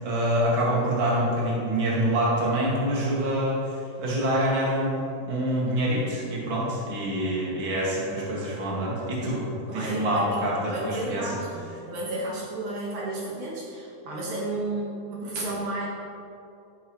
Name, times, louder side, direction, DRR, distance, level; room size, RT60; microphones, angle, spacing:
voice 1, 0.0-11.3, right 1 dB, 45° right, -5 dB, 2.5 m, -26 dB
voice 2, 9.7-15.9, right 2 dB, 70° right, -5 dB, 2.8 m, -32 dB
12.0 x 10.0 x 3.1 m, 2.6 s
omnidirectional pair, 3.6 m